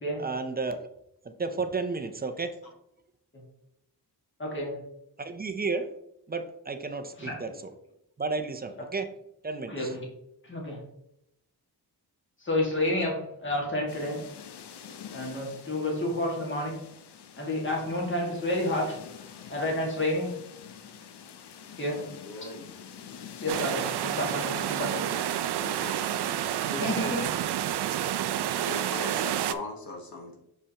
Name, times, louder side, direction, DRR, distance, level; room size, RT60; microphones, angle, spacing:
voice 1, 0.2-0.9 1.2-2.5 5.2-5.9 6.3-7.5 8.2-9.1 9.4-9.8, right 4 dB, 25° right, 7 dB, 0.5 m, -32 dB
voice 2, 4.4-4.8 7.2-7.6 9.7-10.0 10.4-10.8 12.4-14.2 15.1-16.8 17.4-19.0 19.5-20.3 21.8-22.0 23.4-25.1 26.8-27.2 28.7-28.8, left 1 dB, 30° left, -1 dB, 1.8 m, -30 dB
sound 1, 13.9-27.2, left 8 dB, 90° left, 0.7 m, -47 dB
voice 3, 21.9-22.7 25.6-26.0 26.7-27.2 28.6-30.4, left 2 dB, 60° left, 1 dB, 1.4 m, -39 dB
sound 2, 23.5-29.5, right 11 dB, 80° right, 0.5 m, -29 dB
6.8 x 5.3 x 2.9 m, 0.79 s
wide cardioid pair, 145°, 39 cm